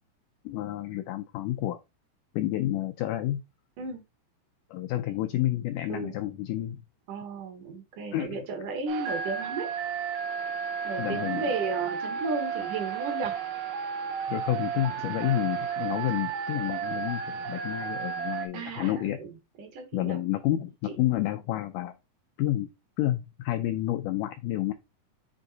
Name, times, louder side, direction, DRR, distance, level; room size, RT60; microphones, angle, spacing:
voice 1, 0.5-1.8 2.3-3.4 4.7-6.8 8.1-8.4 11.0-11.5 14.3-19.2 19.9-21.9 22.4-22.7 23.0-24.7, left 14 dB, 85° left, 1.8 m, -29 dB
voice 2, 7.1-9.7 10.8-13.3 18.5-20.2, right 3 dB, 65° right, 2.5 m, -34 dB
sound 1, 8.9-18.5, right 7 dB, 85° right, 2.8 m, -33 dB
7.9 x 3.5 x 3.9 m
omnidirectional pair, 4.3 m